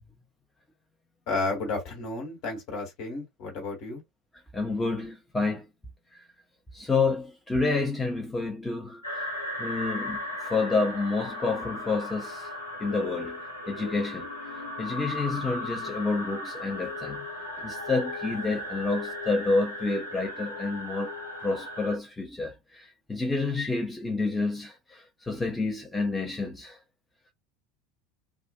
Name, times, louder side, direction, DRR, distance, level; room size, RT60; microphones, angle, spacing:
voice 1, 1.3-4.0, left 3 dB, 50° left, 1.3 m, -32 dB
voice 2, 4.5-5.6 6.7-9.3 9.6-12.5 12.8-13.4 13.7-14.3 14.8-17.3 17.6-21.1 21.4-26.8, left 3 dB, 10° left, 0.7 m, -29 dB
sound 1, 9.0-22.0, left 1 dB, 85° left, 0.8 m, -36 dB
2.4 x 2.1 x 2.4 m
figure-of-eight pair, 75°, 0 cm